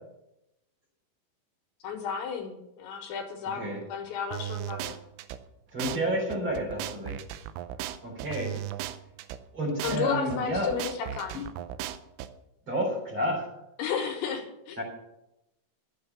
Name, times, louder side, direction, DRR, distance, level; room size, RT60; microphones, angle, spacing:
voice 1, 1.8-5.0 9.8-11.4 13.8-14.8, left 6 dB, 75° left, 4 dB, 3.4 m, -33 dB
voice 2, 3.5-3.8 5.7-7.2 8.0-8.5 9.5-10.7 11.3-11.4 12.6-13.5 14.8-14.9, equal, 30° right, -3 dB, 4.0 m, -30 dB
sound 1, 4.3-5.4 5.8-6.0 6.3-9.4 9.8-10.0 10.3-12.3, right 12 dB, 85° right, 3.2 m, -36 dB
12.5 x 8.6 x 6.9 m, 0.90 s
omnidirectional pair, 5.7 m